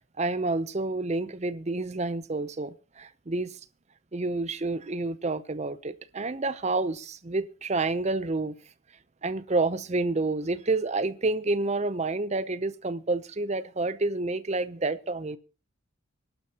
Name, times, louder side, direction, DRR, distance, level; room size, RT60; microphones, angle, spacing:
voice 1, 0.2-3.6 4.1-8.6 9.2-15.4, right 3 dB, 30° right, 0.6 m, -29 dB
25.5 x 11.5 x 2.9 m
head